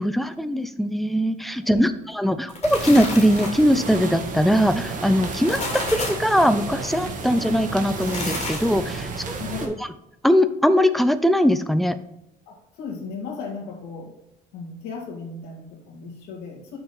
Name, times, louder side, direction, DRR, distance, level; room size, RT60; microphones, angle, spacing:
voice 1, 0.0-9.7 10.2-12.0, equal, ahead, 11 dB, 0.5 m, -21 dB
sound 1, 2.3-3.8 5.2-6.3 7.8-8.9, left 2 dB, 40° left, 2.5 m, -31 dB
sound 2, 2.6-9.7, right 4 dB, 50° right, 1.4 m, -32 dB
voice 2, 9.4-9.8 12.5-14.1 14.5-16.8, left 4 dB, 90° left, 0 dB, 2.1 m, -36 dB
6.3 x 4.5 x 5.5 m, 0.84 s
cardioid pair, 110°, 17 cm